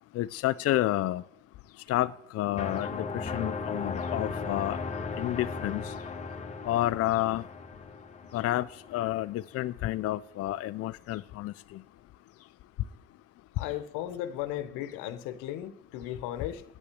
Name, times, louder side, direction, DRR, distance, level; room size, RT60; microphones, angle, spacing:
voice 1, 0.1-1.2 1.9-4.8 5.2-5.8 6.7-7.4 8.3-8.7 8.9-11.5, left 15 dB, 50° left, 0.5 m, -30 dB
sound 1, 2.6-9.3, left 4 dB, 25° left, 1.3 m, -36 dB
voice 2, 13.5-16.6, left 12 dB, 90° left, 1.1 m, -36 dB
9.4 x 8.4 x 8.4 m
cardioid pair, 110°, 30 cm